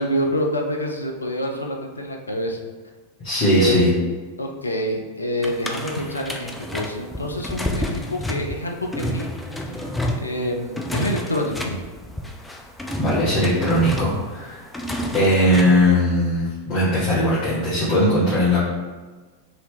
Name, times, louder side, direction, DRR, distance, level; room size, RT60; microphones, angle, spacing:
voice 1, 0.0-2.6 3.5-3.9 4.4-9.3 10.2-11.8, equal, 80° left, 2 dB, 0.4 m, -27 dB
voice 2, 3.2-3.9 13.0-14.6 15.1-18.6, left 1 dB, 40° left, -10 dB, 1.0 m, -19 dB
sound 1, 5.4-15.9, equal, 5° left, 0.4 m, -30 dB
2.9 x 2.8 x 3.4 m, 1.4 s
figure-of-eight pair, 90°, 0 cm